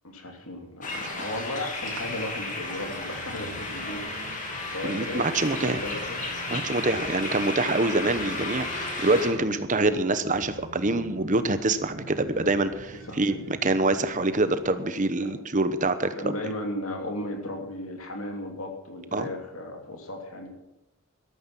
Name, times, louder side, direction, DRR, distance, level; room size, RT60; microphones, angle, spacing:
voice 1, 0.0-4.3 4.7-6.2 8.3-8.4 13.1-13.4 15.2-15.3 16.1-20.5, left 1 dB, 70° left, 3 dB, 2.8 m, -35 dB
sound 1, 0.8-9.3, left 2 dB, 35° left, 2.9 m, -33 dB
sound 2, 1.9-14.7, right 2 dB, 75° right, 1.0 m, -46 dB
voice 2, 4.8-5.8 6.5-13.4 13.6-16.3 19.1-19.3, right 2 dB, 35° right, 11 dB, 1.0 m, -25 dB
13.5 x 13.0 x 6.1 m, 0.95 s
head